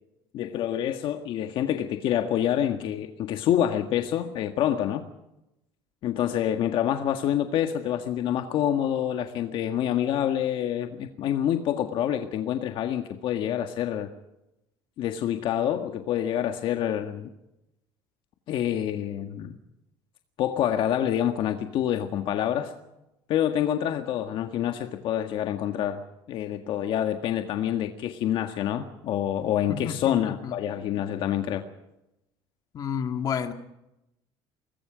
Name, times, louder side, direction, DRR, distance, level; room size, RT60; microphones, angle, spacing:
voice 1, 0.3-5.0 6.0-14.1 15.0-17.3 18.5-19.6 20.4-22.7 23.3-26.0 26.3-31.6, left 10 dB, 55° left, 6 dB, 1.7 m, -27 dB
voice 2, 29.7-30.6 32.7-33.5, left 7 dB, 35° left, 6 dB, 2.1 m, -31 dB
26.0 x 20.5 x 5.1 m, 0.88 s
cardioid pair, 135°, 10 cm